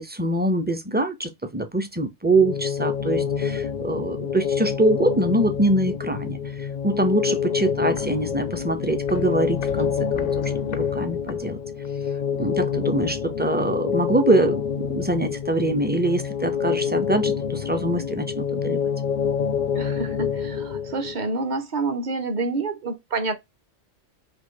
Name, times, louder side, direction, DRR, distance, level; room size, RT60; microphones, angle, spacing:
voice 1, 0.0-10.3 10.7-11.6 12.4-18.8, right 2 dB, 15° right, 0.4 m, -24 dB
sound 1, 2.3-21.2, left 7 dB, 55° left, 0.6 m, -27 dB
Walk footsteps, 7.4-12.1 12.4-12.5, left 10 dB, 80° left, 0.9 m, -40 dB
voice 2, 19.7-23.4, right 3 dB, 45° right, 0.8 m, -28 dB
3.8 x 2.8 x 3.8 m
omnidirectional pair, 1.2 m